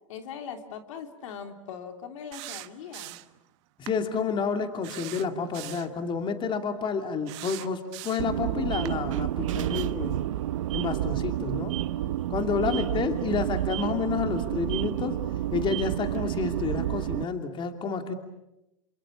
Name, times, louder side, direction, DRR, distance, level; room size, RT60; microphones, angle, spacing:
voice 1, 0.1-3.2 12.6-13.0, left 7 dB, 75° left, 5 dB, 3.3 m, -40 dB
sound 1, 2.3-3.4 3.9-4.0 4.8-5.9 7.3-8.4 8.9-9.0, right 21 dB, 60° right, 1.3 m, -41 dB
voice 2, 3.8-10.2 10.7-11.7 12.3-15.2 15.5-18.1, left 5 dB, 30° left, 6 dB, 2.7 m, -30 dB
sound 2, 8.2-17.3, right 13 dB, 75° right, 0.9 m, -30 dB
28.5 x 27.0 x 7.2 m, 0.92 s
hypercardioid pair, 115°, 17 cm